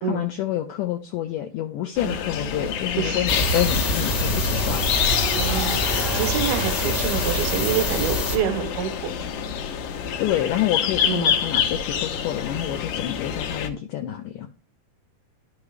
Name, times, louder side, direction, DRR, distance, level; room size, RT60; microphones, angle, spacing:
voice 1, 0.0-5.0 10.2-14.5, left 12 dB, 85° left, 1.9 m, -28 dB
sound 1, 2.0-13.7, left 8 dB, 70° left, 2.3 m, -27 dB
voice 2, 3.0-3.3 5.3-9.1 11.0-11.4, right 9 dB, 75° right, 2.6 m, -27 dB
sound 2, 3.3-8.4, left 1 dB, 50° left, 1.2 m, -25 dB
Race car auto racing, 4.5-13.6, right 2 dB, 25° right, 0.6 m, -38 dB
12.0 x 6.0 x 3.3 m
omnidirectional pair, 4.5 m